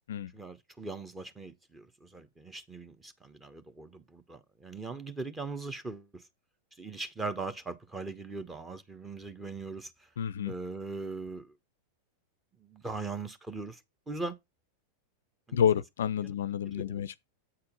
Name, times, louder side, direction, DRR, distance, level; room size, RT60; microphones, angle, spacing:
voice 1, 0.3-6.1 6.8-9.9 10.5-11.5 12.6-13.8 14.1-14.4 15.5-15.6 16.2-16.3 16.7-17.0, right 3 dB, 15° right, 1.3 m, -40 dB
voice 2, 10.2-10.5 15.5-17.2, left 8 dB, 60° left, 0.4 m, -29 dB
8.8 x 4.3 x 5.3 m
figure-of-eight pair, 90°, 0 cm